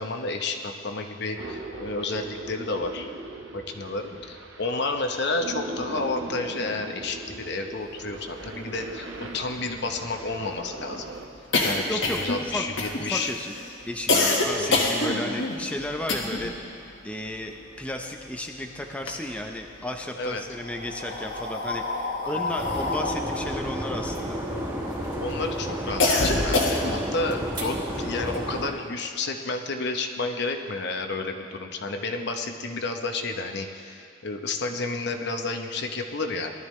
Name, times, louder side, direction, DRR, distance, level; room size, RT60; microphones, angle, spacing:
voice 1, 0.0-3.1 3.5-11.0 11.6-13.3 14.1-14.8 20.2-20.4 22.2-22.5 25.2-36.5, left 3 dB, 60° left, 5 dB, 0.9 m, -31 dB
sound 1, 1.4-11.3, right 2 dB, 80° right, 1.2 m, -39 dB
sound 2, 8.4-8.5 8.7-8.8 9.1-16.6 16.9-18.5 18.8-19.8 20.5-25.0 25.4-27.1, left 2 dB, 85° left, 1.6 m, -27 dB
voice 2, 11.9-12.7 13.0-13.5 13.9-24.4, left 1 dB, 5° left, 2 dB, 0.6 m, -34 dB
sound 3, 22.6-28.7, equal, 25° right, 3.3 m, -31 dB
19.5 x 12.5 x 3.2 m, 2.7 s
head